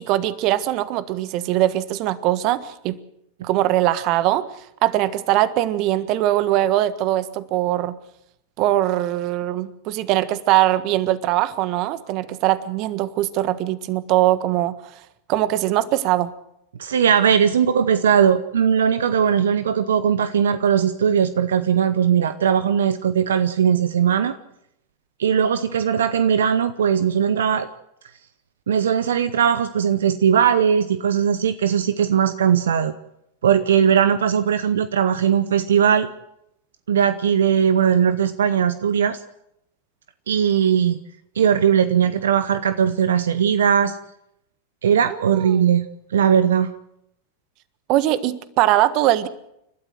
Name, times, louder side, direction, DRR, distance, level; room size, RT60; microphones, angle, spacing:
voice 1, 0.0-3.0 3.4-4.4 4.8-8.0 8.6-14.8 15.3-16.3 45.1-45.6 47.9-49.3, right 14 dB, 50° right, 15 dB, 1.4 m, -21 dB
voice 2, 16.8-24.3 25.2-27.7 28.7-32.9 33.4-36.1 36.9-39.2 40.3-41.0 41.3-44.0 44.8-45.8 46.1-46.7, right 8 dB, 75° right, 13 dB, 0.9 m, -19 dB
29.5 x 13.0 x 7.8 m, 0.79 s
hypercardioid pair, 95°, 0 cm